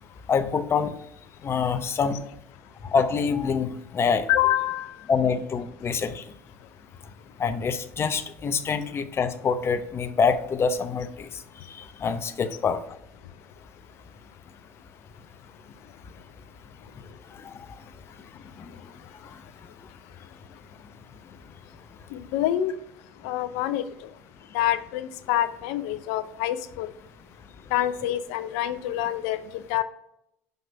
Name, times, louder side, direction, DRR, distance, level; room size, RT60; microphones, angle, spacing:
voice 1, 0.3-0.9 1.4-2.2 2.8-4.3 5.1-6.2 7.4-11.3 11.7-12.8 17.4-17.5, left 5 dB, 35° left, 10 dB, 0.8 m, -25 dB
voice 2, 4.3-5.0 22.1-22.7 23.2-23.8 24.5-26.9 27.7-29.8, left 13 dB, 70° left, 13 dB, 0.6 m, -26 dB
5.6 x 5.4 x 4.6 m, 0.76 s
hypercardioid pair, 70°, 7 cm